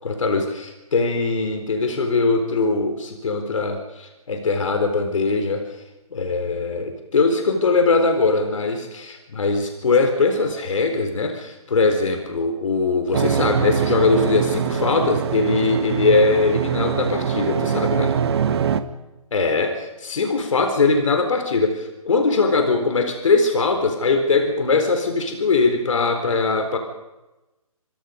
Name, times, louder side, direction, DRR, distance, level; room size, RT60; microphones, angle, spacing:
voice 1, 0.0-5.7 6.1-18.2 19.3-26.8, left 3 dB, 60° left, 6 dB, 4.2 m, -21 dB
sound 1, 13.1-18.8, right 7 dB, 45° right, 1.8 m, -23 dB
28.0 x 26.5 x 5.3 m, 1.0 s
figure-of-eight pair, 145°, 18 cm